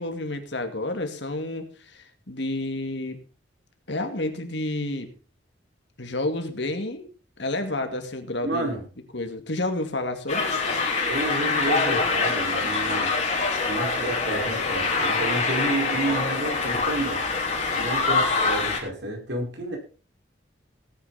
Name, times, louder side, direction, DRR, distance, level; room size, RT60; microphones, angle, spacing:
voice 1, 0.0-3.2 3.9-5.1 6.0-7.1 7.4-8.8 9.1-10.4, left 2 dB, 65° left, 7 dB, 2.3 m, -30 dB
voice 2, 8.4-8.8 11.1-13.1 13.6-17.2 17.7-19.8, right 2 dB, 70° right, 1 dB, 5.0 m, -30 dB
sound 1, 10.3-18.8, left 4 dB, 35° left, 3.4 m, -25 dB
17.5 x 9.6 x 4.2 m, 0.36 s
head